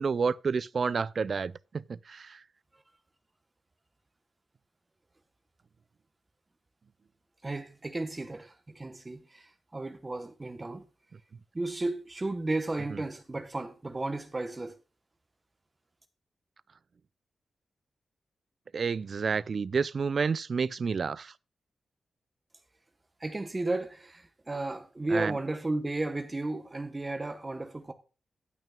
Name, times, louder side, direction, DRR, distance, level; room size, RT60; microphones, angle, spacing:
voice 1, 0.0-2.4 18.7-21.3 25.1-25.3, right 5 dB, 55° right, 0.4 m, -30 dB
voice 2, 7.4-10.8 11.5-14.7 23.2-27.9, right 2 dB, 25° right, 1.0 m, -34 dB
17.5 x 6.0 x 2.3 m
wide cardioid pair, 100°, 0 cm